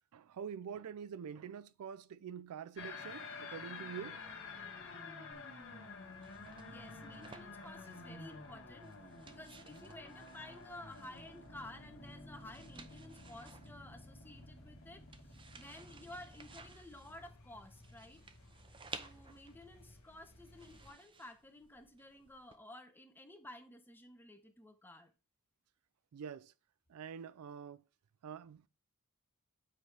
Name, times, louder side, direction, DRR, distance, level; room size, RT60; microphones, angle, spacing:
voice 1, 0.1-4.3 6.4-6.6 7.0-7.1 8.3-8.4 26.1-26.5 26.9-27.8 28.2-28.7, right 7 dB, 80° right, 0.4 m, -46 dB
sound 1, 2.8-16.7, left 4 dB, 60° left, 1.5 m, -51 dB
sound 2, 4.2-20.9, left 1 dB, 80° left, 1.6 m, -61 dB
sound 3, 5.3-22.6, right 4 dB, 20° right, 0.5 m, -57 dB
voice 2, 6.6-8.9 9.2-18.2 18.9-25.1, left 1 dB, 10° left, 0.7 m, -53 dB
7.8 x 3.3 x 4.7 m
head